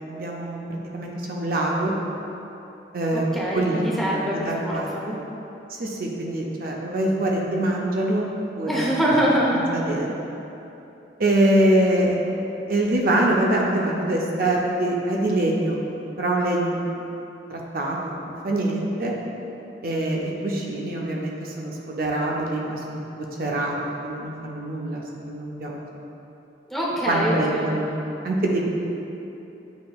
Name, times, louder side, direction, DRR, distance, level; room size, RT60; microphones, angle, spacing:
voice 1, 0.1-1.9 2.9-3.3 3.5-4.0 4.3-5.1 5.7-8.2 8.6-8.9 9.5-10.1 11.2-12.2 12.7-15.8 16.2-17.0 17.5-18.0 18.2-19.1 19.8-23.0 23.4-23.8 24.0-25.8 27.1-27.9 28.2-28.6, right 1 dB, 55° right, -2 dB, 0.5 m, -24 dB
voice 2, 3.1-5.0 8.7-9.6 26.7-27.7, equal, ahead, -6 dB, 0.6 m, -24 dB
8.0 x 2.9 x 2.3 m, 3.0 s
head